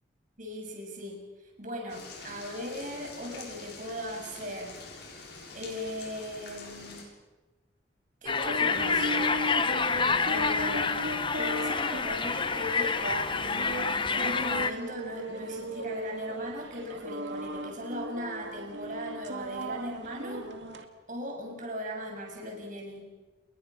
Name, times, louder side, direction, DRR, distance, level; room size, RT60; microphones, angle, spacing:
voice 1, 0.4-4.8 5.5-7.0 8.2-9.1 10.3-10.8 11.4-13.0 14.1-20.4 21.1-23.1, left 1 dB, 40° right, 1 dB, 7.2 m, -38 dB
sound 1, 1.9-7.0, left 3 dB, 60° left, 6.7 m, -46 dB
sound 2, 8.3-14.7, left 4 dB, 25° left, 1.0 m, -28 dB
sound 3, 8.5-20.9, right 1 dB, 65° right, 2.3 m, -37 dB
30.0 x 22.0 x 5.9 m, 1.2 s
head